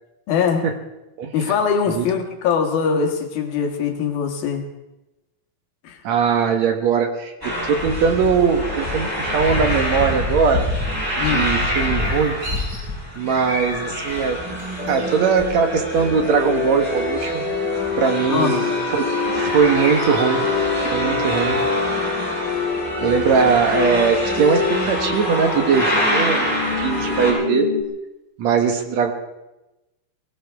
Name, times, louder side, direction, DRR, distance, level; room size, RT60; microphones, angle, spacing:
voice 1, 0.3-0.6 1.3-4.6 5.8-6.0 11.2-11.5 18.3-18.5, left 6 dB, 75° left, 4 dB, 3.3 m, -22 dB
voice 2, 1.2-1.6 1.9-2.1 6.0-10.7 11.2-12.4 13.2-14.4 14.9-17.5 17.9-19.0 19.4-20.5 20.9-21.6 23.0-27.7 28.4-29.1, right 6 dB, 60° right, 5 dB, 2.1 m, -20 dB
sound 1, 7.4-27.3, left 1 dB, 5° right, 4.9 m, -26 dB
sound 2, 11.6-12.8 13.1-14.2 14.6-15.0 19.4-20.2, equal, 75° right, 8.8 m, -32 dB
sound 3, 14.8-27.8, left 4 dB, 20° left, 1.6 m, -26 dB
22.5 x 17.5 x 3.5 m, 0.98 s
omnidirectional pair, 4.4 m